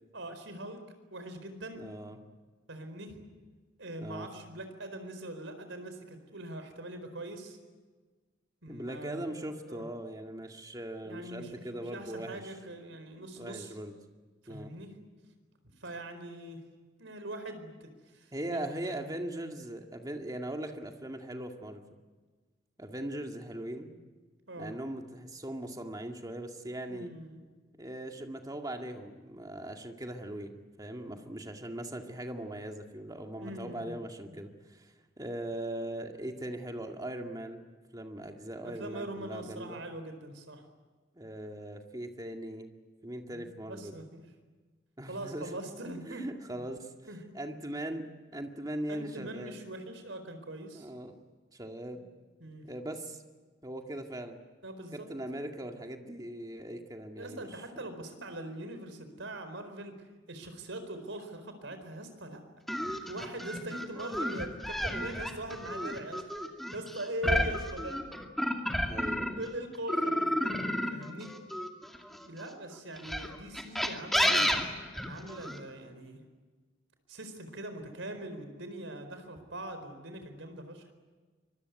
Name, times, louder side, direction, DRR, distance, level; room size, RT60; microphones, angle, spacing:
voice 1, 0.1-0.8 1.1-1.9 2.7-3.2 3.8-7.6 8.6-9.2 9.7-9.8 11.0-13.7 14.5-14.9 15.8-16.6 17.0-18.6 24.5-24.7 26.9-27.4 33.3-34.0 34.2-34.4 38.6-40.6 43.3-44.2 45.1-46.3 47.1-47.2 48.9-50.9 52.4-52.6 54.6-55.1 57.2-62.4 63.1-66.2 66.7-68.0 68.8-69.0 69.4-70.6 70.9-71.3 72.2-74.6 75.1-76.2 77.1-80.9, right 1 dB, 85° right, 8 dB, 4.5 m, -42 dB
voice 2, 1.8-2.2 4.0-4.3 8.7-12.5 13.4-13.9 14.5-14.7 18.3-21.8 22.8-23.9 24.6-27.1 27.8-30.5 30.8-37.6 37.9-39.8 41.2-42.7 43.0-44.0 45.0-45.5 46.1-46.9 47.3-49.6 50.8-51.2 51.5-52.0 52.7-53.2 53.6-54.4 54.9-57.6 67.2-67.5 68.9-69.5, right 1 dB, 20° right, 4 dB, 2.1 m, -40 dB
sound 1, 62.7-69.5 69.9-72.3 73.0-75.6, equal, ahead, 2.4 m, -31 dB
25.0 x 22.5 x 9.5 m, 1.4 s
head